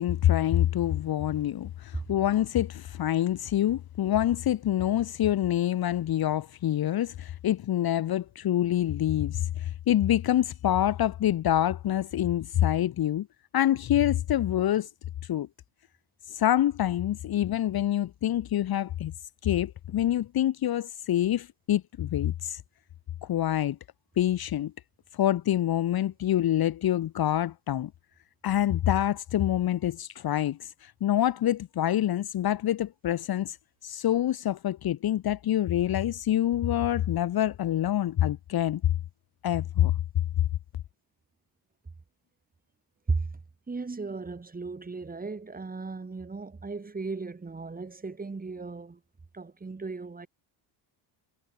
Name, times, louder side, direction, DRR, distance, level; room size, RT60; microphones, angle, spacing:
voice 1, 0.0-13.3 13.5-14.9 15.3-15.5 16.3-19.1 19.4-22.6 23.2-23.8 24.2-24.7 25.1-27.9 28.4-33.6 33.8-38.8 39.4-39.9, left 12 dB, 45° left, 1.3 m, -26 dB
voice 2, 43.7-49.0 49.3-50.3, right 4 dB, 15° right, 4.9 m, -35 dB
cardioid pair, 150°, 49 cm